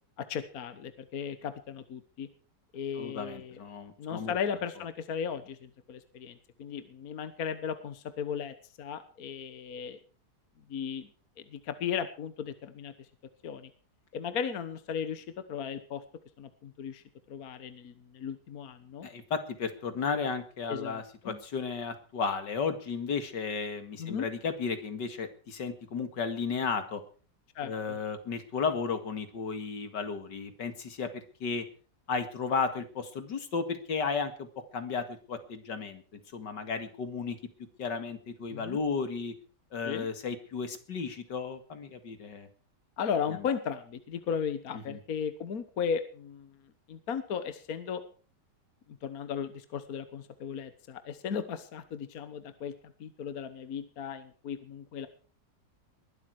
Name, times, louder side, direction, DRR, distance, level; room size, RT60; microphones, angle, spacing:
voice 1, 0.2-2.3 2.7-3.6 4.0-10.0 10.7-11.1 11.5-12.9 13.4-13.7 14.1-16.0 16.4-19.1 20.7-21.4 24.0-24.3 27.5-28.0 38.5-38.8 39.8-40.1 43.0-46.5 46.9-48.0 49.0-52.7 53.0-55.1, left 7 dB, 60° left, 11 dB, 1.6 m, -36 dB
voice 2, 3.0-4.3 19.0-27.0 27.6-31.7 32.1-34.5 34.7-37.4 37.8-39.4 39.7-42.5 43.4-43.5 44.7-45.0, left 5 dB, 80° left, 9 dB, 2.6 m, -34 dB
21.0 x 12.0 x 4.7 m, 0.41 s
omnidirectional pair, 1.8 m